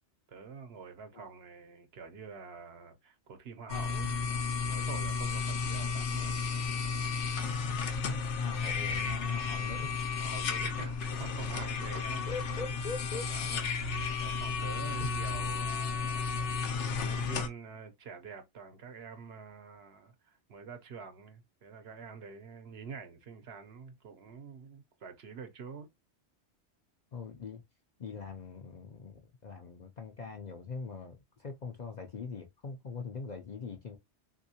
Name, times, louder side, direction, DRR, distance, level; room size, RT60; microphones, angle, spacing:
voice 1, 0.3-4.2 4.7-6.4 10.2-12.3 13.1-13.7 14.2-25.9, right 5 dB, 65° right, 0.9 m, -47 dB
sound 1, 3.7-17.5, left 5 dB, 75° left, 1.0 m, -33 dB
voice 2, 8.0-9.9 12.3-13.3 15.0-15.1 27.1-27.6 28.0-34.0, left 4 dB, 50° left, 0.5 m, -42 dB
3.5 x 2.7 x 2.7 m
omnidirectional pair, 1.2 m